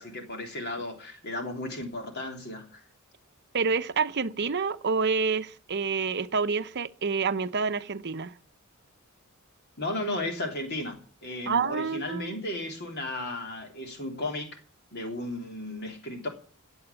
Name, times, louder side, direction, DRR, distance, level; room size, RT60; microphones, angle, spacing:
voice 1, 0.0-2.8 9.8-14.6 14.9-16.3, left 1 dB, 50° left, 3.1 m, -34 dB
voice 2, 3.5-8.3 11.5-12.4, right 5 dB, 50° right, 0.8 m, -28 dB
16.0 x 8.2 x 8.3 m
head